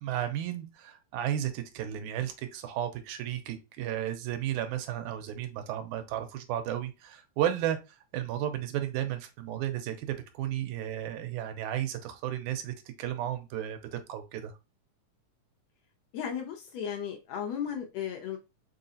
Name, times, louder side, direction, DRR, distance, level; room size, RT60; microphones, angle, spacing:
voice 1, 0.0-7.8 8.1-14.5, right 11 dB, 85° right, 2.1 m, -33 dB
voice 2, 16.1-18.4, left 8 dB, 75° left, 1.7 m, -35 dB
4.8 x 3.8 x 2.7 m
omnidirectional pair, 3.5 m